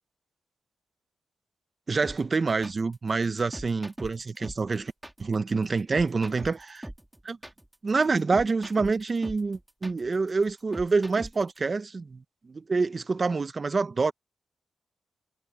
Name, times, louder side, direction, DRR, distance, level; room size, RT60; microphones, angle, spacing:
voice 1, 1.9-4.9 5.2-6.8 7.2-7.4 7.8-14.1, right 4 dB, 40° right, 1.3 m, -27 dB
sound 1, 2.0-11.6, right 1 dB, 10° right, 3.3 m, -41 dB
cardioid pair, 75°, 0 cm